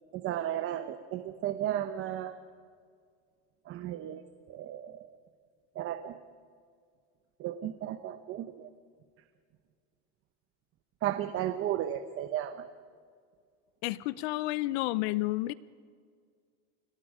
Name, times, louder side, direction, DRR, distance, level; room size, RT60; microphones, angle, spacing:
voice 1, 0.1-2.4 3.7-4.2 4.5-5.1 5.7-6.2 7.4-8.7 11.0-12.7, right 11 dB, 40° right, 9 dB, 0.9 m, -34 dB
voice 2, 13.8-15.5, left 18 dB, 80° left, 18 dB, 0.7 m, -31 dB
28.0 x 19.0 x 5.0 m, 2.1 s
cardioid pair, 150°, 33 cm